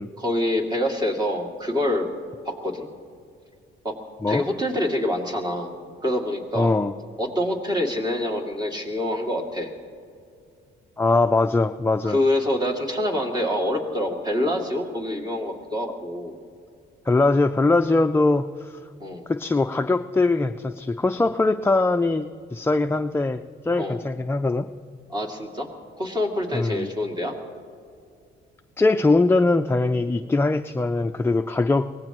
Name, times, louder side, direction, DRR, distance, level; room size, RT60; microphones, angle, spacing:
voice 1, 0.2-2.1 2.4-2.9 3.8-3.9 4.3-5.7 6.0-6.8 7.2-9.7 12.0-16.4 19.0-19.2 23.8-24.0 25.1-25.7 26.0-27.3, left 1 dB, 20° right, 1 dB, 2.5 m, -26 dB
voice 2, 6.5-6.9 11.0-12.2 17.1-18.8 19.3-24.7 26.5-26.9 28.8-31.9, left 2 dB, 10° left, 7 dB, 0.4 m, -21 dB
23.5 x 18.5 x 3.1 m, 2.3 s
cardioid pair, 90°, 20 cm